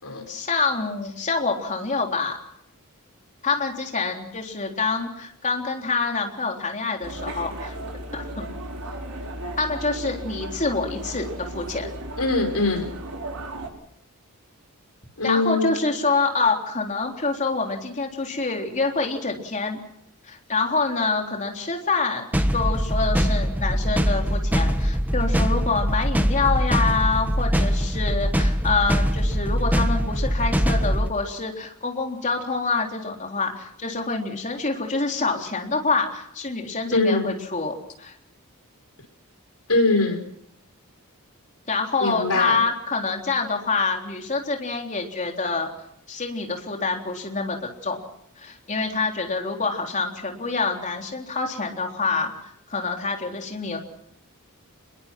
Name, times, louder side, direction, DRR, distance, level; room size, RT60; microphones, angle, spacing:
voice 1, 0.3-2.4 3.4-7.7 8.1-8.5 9.6-11.9 15.2-19.8 20.2-38.1 41.7-45.7 46.1-48.0 48.4-52.3 52.7-53.8, left 4 dB, 35° left, 2 dB, 3.6 m, -26 dB
sound 1, 7.0-13.7, right 1 dB, 90° right, 4.7 m, -35 dB
voice 2, 12.2-12.9 15.2-15.7 36.9-37.3 39.7-40.2 42.0-42.6, left 3 dB, 85° left, 4 dB, 5.4 m, -22 dB
sound 2, 22.3-31.1, equal, 10° right, 1.3 m, -22 dB
27.0 x 21.5 x 6.1 m, 0.72 s
head